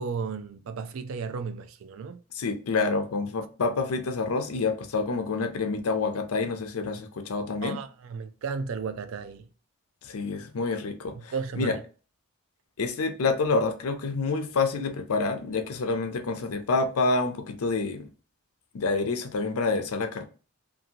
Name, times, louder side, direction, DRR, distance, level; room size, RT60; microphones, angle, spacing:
voice 1, 0.0-2.2 7.6-9.5 11.1-11.8, right 5 dB, 60° right, 0.3 m, -34 dB
voice 2, 2.3-7.8 10.0-11.8 12.8-18.1 18.7-20.2, left 3 dB, 75° left, 0.5 m, -28 dB
2.7 x 2.6 x 2.7 m
head